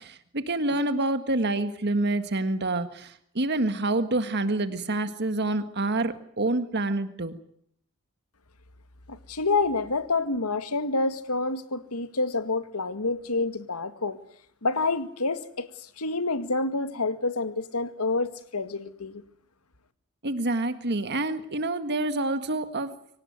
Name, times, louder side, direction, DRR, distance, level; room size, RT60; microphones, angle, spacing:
voice 1, 0.0-7.4 20.2-22.9, right 2 dB, 50° right, 10 dB, 1.7 m, -27 dB
voice 2, 9.1-14.2 14.6-19.2, left 3 dB, 85° left, 10 dB, 2.1 m, -28 dB
25.0 x 18.0 x 9.5 m, 0.66 s
head